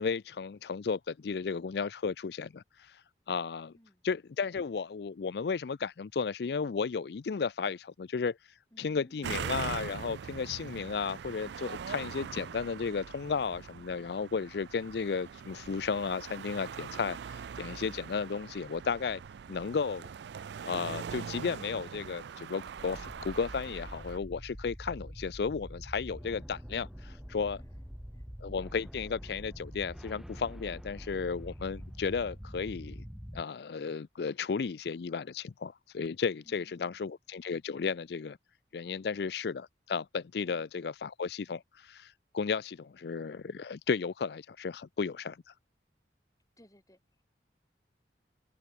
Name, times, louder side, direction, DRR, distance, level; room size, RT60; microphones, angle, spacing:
voice 1, 0.0-3.7 4.0-19.2 19.5-20.1 20.6-27.6 28.4-33.0 33.3-38.4 38.7-45.5, left 5 dB, 65° left, 0.4 m, -34 dB
voice 2, 8.7-9.4 27.5-27.8 28.1-28.3 36.4-37.1 46.6-47.3, equal, 20° left, 5.4 m, -61 dB
sound 1, 9.2-24.2, right 7 dB, 75° right, 0.4 m, -42 dB
sound 2, 22.8-33.4, equal, ahead, 1.3 m, -45 dB
open air
head